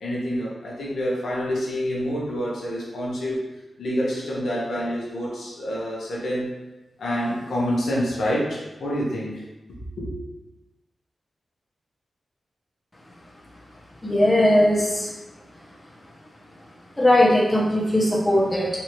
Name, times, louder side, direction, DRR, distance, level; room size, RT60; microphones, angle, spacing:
voice 1, 0.0-3.5 3.8-6.5 7.0-9.4 9.7-10.1, equal, 85° left, -5 dB, 0.8 m, -27 dB
voice 2, 14.0-15.1 17.0-18.7, left 1 dB, 25° left, -5 dB, 1.0 m, -19 dB
3.3 x 2.7 x 3.0 m, 1.0 s
cardioid pair, 65°, 0 cm